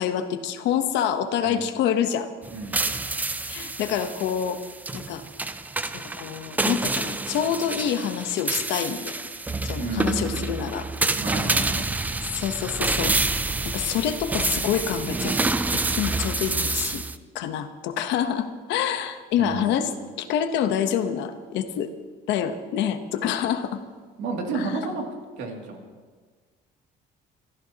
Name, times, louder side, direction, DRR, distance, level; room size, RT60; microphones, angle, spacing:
voice 1, 0.0-2.3 3.5-4.6 4.9-5.2 5.9-9.1 9.6-10.9 12.3-13.2 13.6-17.0 17.3-19.9 20.2-21.9 22.3-23.8 24.5-24.7, left 9 dB, 75° left, 9 dB, 1.0 m, -27 dB
sound 1, 2.4-17.2, right 3 dB, 10° right, 0.3 m, -28 dB
voice 2, 9.8-10.4 11.1-11.9 19.4-19.8 24.2-25.0 25.4-25.9, right 3 dB, 90° right, 1 dB, 2.6 m, -31 dB
24.0 x 14.0 x 2.9 m, 1.5 s
cardioid pair, 170°, 18 cm